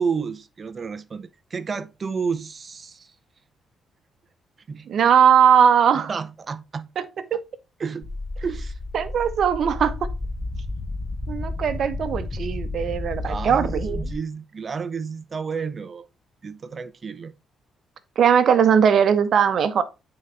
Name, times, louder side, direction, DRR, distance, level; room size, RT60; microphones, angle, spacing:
voice 1, 0.0-3.1 4.7-4.9 5.9-6.9 7.8-8.1 8.4-8.7 13.2-16.1 16.4-17.3, right 5 dB, 40° right, 0.6 m, -31 dB
voice 2, 4.9-6.1 7.0-7.1 7.3-7.4 8.9-10.0 11.3-14.1 18.2-19.8, right 8 dB, 60° right, 0.9 m, -19 dB
sound 1, 8.0-14.2, left 2 dB, 25° left, 1.1 m, -31 dB
8.9 x 4.0 x 3.9 m
cardioid pair, 90°, 0 cm